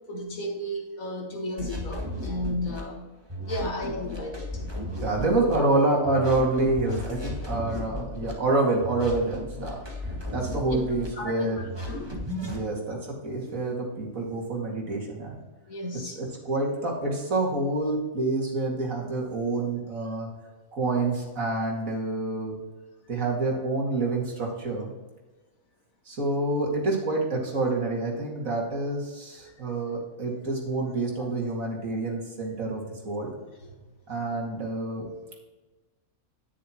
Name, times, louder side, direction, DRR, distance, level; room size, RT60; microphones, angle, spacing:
voice 1, 0.0-3.2 3.5-4.6 10.7-10.8 11.1-12.1 15.7-16.2 31.1-31.3 33.6-33.9 34.3-34.4, equal, 75° left, 1 dB, 2.0 m, -34 dB
sound 1, 1.6-2.8 3.3-5.6 6.0-8.3 8.8-11.1 11.6-12.6, left 1 dB, 20° right, 1.7 m, -35 dB
voice 2, 5.0-11.6 12.4-15.3 16.1-20.3 20.7-22.6 23.1-24.9 26.1-33.3 34.1-35.1, right 2 dB, 75° right, -2 dB, 2.6 m, -27 dB
10.0 x 9.9 x 3.0 m, 1.2 s
omnidirectional pair, 1.4 m